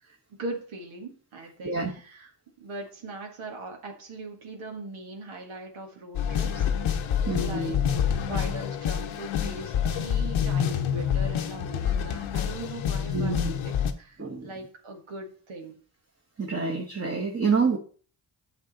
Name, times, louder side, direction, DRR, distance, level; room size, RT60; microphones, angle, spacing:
voice 1, 0.0-2.3 2.6-6.7 7.4-7.8 8.2-15.8, right 2 dB, 85° right, 3 dB, 1.7 m, -40 dB
sound 1, 6.1-13.9, left 8 dB, 85° left, 0.9 m, -27 dB
voice 2, 7.3-7.7 13.1-13.5 14.2-14.5 16.4-17.8, right 4 dB, 30° right, 0 dB, 1.3 m, -27 dB
8.1 x 5.9 x 4.1 m, 0.42 s
cardioid pair, 50°, 47 cm